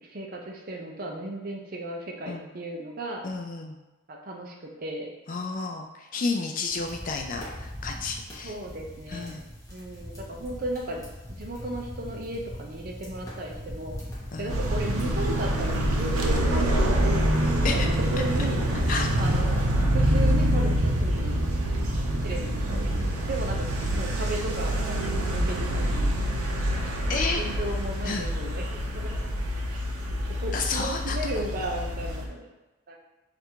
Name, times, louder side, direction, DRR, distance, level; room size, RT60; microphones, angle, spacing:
voice 1, 0.0-3.2 4.1-5.1 8.4-9.4 9.7-11.0 11.4-14.0 14.4-18.7 19.2-19.7 19.9-21.6 22.2-26.1 27.2-29.3 29.7-29.9 30.3-32.5 32.9-33.0, right 1 dB, 40° right, 0 dB, 0.5 m, -35 dB
voice 2, 3.2-3.8 5.3-8.6 9.1-9.4 14.3-14.5 17.6-17.9 18.9-19.3 27.1-27.4 28.0-28.3 30.5-31.2, left 4 dB, 40° left, 3 dB, 0.3 m, -31 dB
sound 1, 6.7-16.2, equal, 15° left, 0.9 m, -41 dB
sound 2, 11.8-25.0, left 1 dB, 80° left, 1.0 m, -47 dB
sound 3, 14.5-32.3, equal, 90° right, 0.6 m, -26 dB
3.4 x 2.5 x 4.4 m, 1.1 s
head